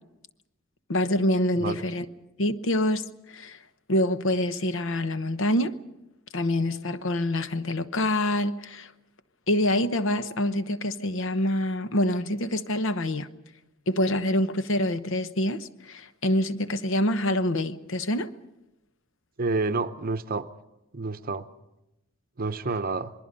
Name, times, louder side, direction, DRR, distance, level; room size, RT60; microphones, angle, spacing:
voice 1, 0.9-2.1 2.4-3.6 3.9-5.8 6.3-8.9 9.5-13.3 13.9-18.3, left 1 dB, 65° left, 1.0 m, -26 dB
voice 2, 19.4-20.5 20.9-21.5 22.4-23.1, right 3 dB, 45° right, 0.8 m, -29 dB
27.0 x 21.0 x 5.4 m
head